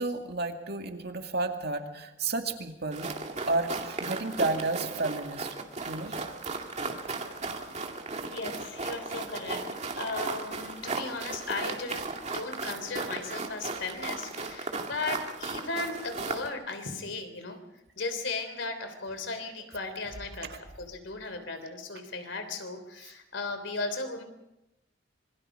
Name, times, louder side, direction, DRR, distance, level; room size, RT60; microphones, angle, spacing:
voice 1, 0.0-3.1 3.4-5.5 5.9-6.1 20.4-20.6, right 3 dB, 60° right, 4 dB, 2.3 m, -31 dB
sound 1, 2.9-16.5, right 3 dB, 40° right, 2.2 m, -36 dB
voice 2, 8.3-9.7 10.0-17.6 18.0-24.2, left 3 dB, 75° left, 8 dB, 3.4 m, -36 dB
26.5 x 23.5 x 5.1 m, 0.90 s
head